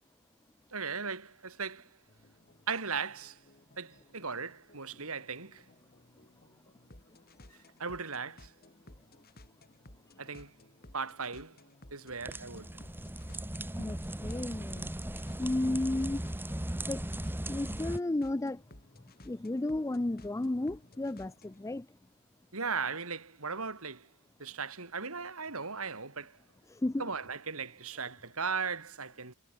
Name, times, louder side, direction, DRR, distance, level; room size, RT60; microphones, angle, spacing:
voice 1, 0.7-1.9 2.7-3.4 3.8-5.7 7.8-8.5 10.2-10.5 10.9-11.6 11.9-12.7 22.5-24.1 24.4-26.4 27.0-29.3, right 5 dB, 70° right, 3.6 m, -37 dB
sound 1, 2.1-21.7, left 1 dB, 45° left, 4.7 m, -58 dB
sound 2, 12.1-18.0, right 1 dB, 10° right, 1.2 m, -38 dB
voice 2, 13.8-15.0 15.4-16.3 16.9-17.1 17.5-18.6 19.2-21.9 26.7-27.1, left 2 dB, 15° left, 0.4 m, -33 dB
head